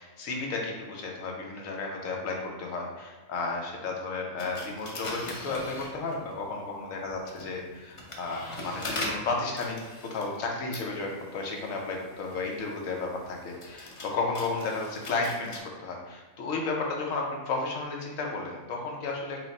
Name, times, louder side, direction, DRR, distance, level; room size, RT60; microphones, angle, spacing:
voice 1, 0.0-9.8 10.0-19.4, left 3 dB, 75° left, 0 dB, 1.1 m, -33 dB
sound 1, 4.4-6.4 7.1-15.6, left 1 dB, 55° left, 0.3 m, -41 dB
4.5 x 2.1 x 3.9 m, 1.3 s
omnidirectional pair, 1.4 m